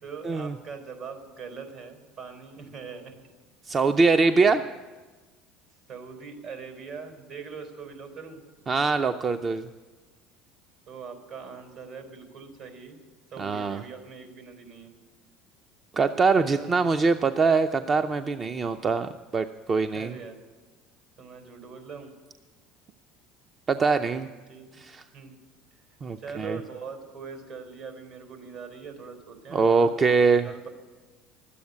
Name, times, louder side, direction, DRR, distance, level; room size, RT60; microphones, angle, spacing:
voice 1, 0.0-3.1 4.2-4.6 5.9-8.4 10.9-13.0 13.3-14.9 16.4-16.8 19.9-20.4 21.2-22.1 24.0-24.8 25.1-25.4 26.2-29.9 30.4-30.7, right 5 dB, 65° right, 5 dB, 3.9 m, -42 dB
voice 2, 3.7-4.6 8.7-9.7 13.4-13.8 15.9-20.1 23.7-24.3 24.8-25.0 26.0-26.6 29.5-30.5, right 4 dB, 30° right, 8 dB, 0.5 m, -23 dB
12.5 x 8.5 x 9.4 m, 1.3 s
supercardioid pair, 90°, 0 cm